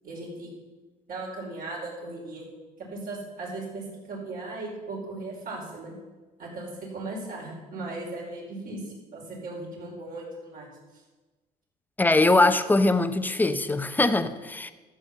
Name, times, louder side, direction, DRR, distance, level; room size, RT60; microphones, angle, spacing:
voice 1, 0.0-0.5 1.1-2.5 2.8-6.0 6.4-10.7 10.9-11.0, right 2 dB, 55° right, 4.8 m, -37 dB
voice 2, 12.0-14.7, left 2 dB, 10° left, 0.7 m, -22 dB
13.0 x 6.3 x 7.4 m
cardioid pair, 110°, 17 cm